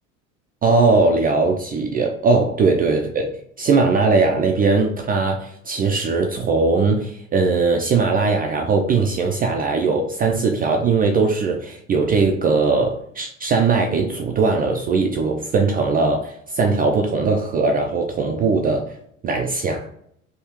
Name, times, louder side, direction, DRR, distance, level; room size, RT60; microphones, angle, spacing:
voice 1, 0.6-3.3 3.6-18.8 19.2-19.9, right 4 dB, 25° right, 2 dB, 0.3 m, -19 dB
3.5 x 2.4 x 2.9 m, 0.71 s
hypercardioid pair, 70°, 39 cm